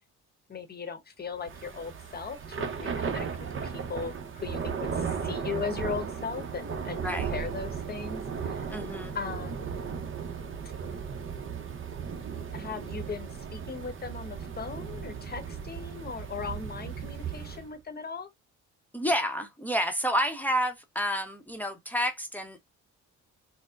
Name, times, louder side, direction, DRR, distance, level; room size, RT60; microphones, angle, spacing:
voice 1, 0.5-3.3 3.6-8.7 9.1-9.7 12.5-18.3, left 5 dB, 30° left, 0.9 m, -38 dB
Thunder / Rain, 1.4-17.7, right 6 dB, 45° right, 0.8 m, -36 dB
voice 2, 8.7-9.2 18.9-22.6, equal, 5° left, 0.8 m, -29 dB
4.3 x 2.1 x 2.4 m
cardioid pair, 90°, 30 cm